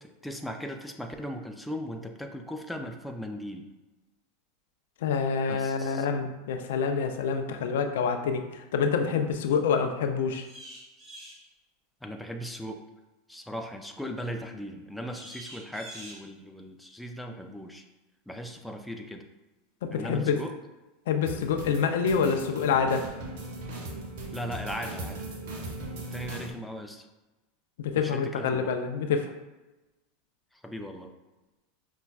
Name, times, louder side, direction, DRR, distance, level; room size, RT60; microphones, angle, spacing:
voice 1, 0.0-3.7 5.5-6.1 12.0-12.8 13.3-17.8 18.3-19.2 19.9-20.5 24.3-25.2 26.1-27.1 27.9-28.7 30.5-31.1, equal, 5° left, 3 dB, 0.4 m, -38 dB
voice 2, 5.0-10.5 19.8-20.4 21.1-23.0 27.8-29.3, left 6 dB, 80° left, 6 dB, 0.4 m, -27 dB
sound 1, 10.4-11.4 15.1-16.2, right 1 dB, 20° right, 1.4 m, -45 dB
sound 2, 21.3-26.5, right 2 dB, 70° right, 0.7 m, -38 dB
5.3 x 2.2 x 2.3 m, 1.1 s
hypercardioid pair, 110°, 0 cm